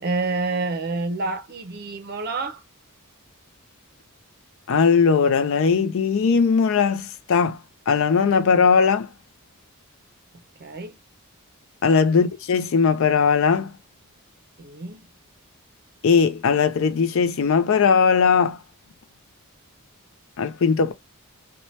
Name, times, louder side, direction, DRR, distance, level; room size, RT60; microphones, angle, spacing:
voice 1, 0.0-2.6 10.6-11.0 12.1-12.3 14.6-15.0, right 3 dB, 45° right, 0.6 m, -28 dB
voice 2, 4.7-7.6 7.9-9.1 11.8-13.7 16.0-18.6 20.4-20.9, left 5 dB, 60° left, 0.4 m, -19 dB
2.7 x 2.2 x 3.0 m
head